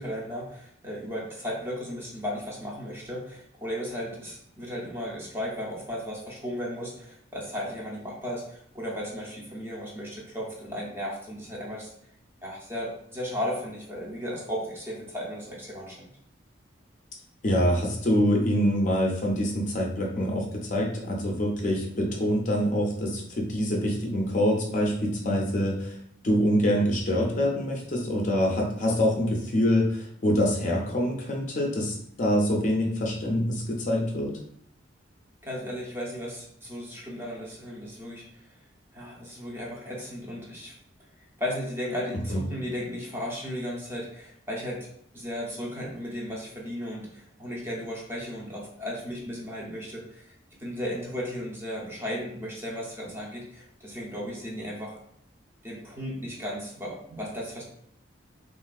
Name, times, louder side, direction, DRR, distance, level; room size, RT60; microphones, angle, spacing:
voice 1, 0.0-11.9 12.4-16.0 35.4-38.6 38.9-40.7 41.4-44.9 45.1-50.3 50.6-55.0 55.6-57.6, equal, 10° right, -4 dB, 0.6 m, -35 dB
voice 2, 17.4-26.0 26.2-34.3 42.3-42.4, equal, 40° left, -1 dB, 0.5 m, -25 dB
3.4 x 2.4 x 2.3 m, 0.70 s
head